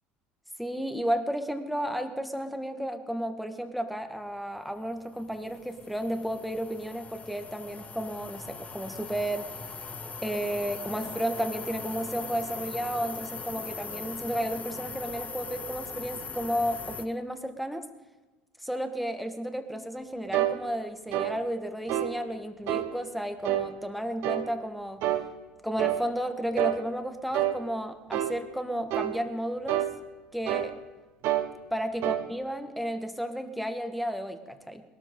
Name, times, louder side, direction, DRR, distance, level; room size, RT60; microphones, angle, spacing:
voice 1, 0.6-9.5 10.2-17.9 18.6-25.1 25.6-29.9 30.3-30.7 31.7-34.8, equal, ahead, 7 dB, 1.7 m, -33 dB
sound 1, 4.9-17.1, left 5 dB, 30° left, 1.2 m, -40 dB
sound 2, 20.3-20.6 21.1-21.3 21.9-22.1 22.7-22.9 23.4-23.7 24.2-24.5 25.0-25.3 25.8-26.0 26.6-26.8 27.3-27.6 28.1-28.3 28.9-29.2 29.7-29.9 30.5-30.7 31.2-31.5 32.0-32.2, right 13 dB, 60° right, 1.3 m, -27 dB
21.0 x 13.0 x 3.8 m, 1.2 s
hypercardioid pair, 75°, 5 cm